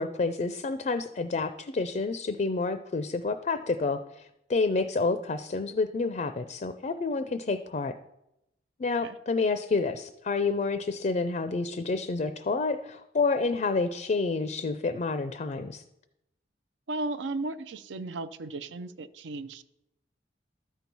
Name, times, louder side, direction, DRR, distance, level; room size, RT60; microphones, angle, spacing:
voice 1, 0.0-4.2 4.5-7.9 8.8-15.8, left 3 dB, 40° left, 10 dB, 0.4 m, -29 dB
voice 2, 16.9-19.6, right 2 dB, 85° right, 13 dB, 0.5 m, -35 dB
13.0 x 4.5 x 5.4 m, 0.85 s
head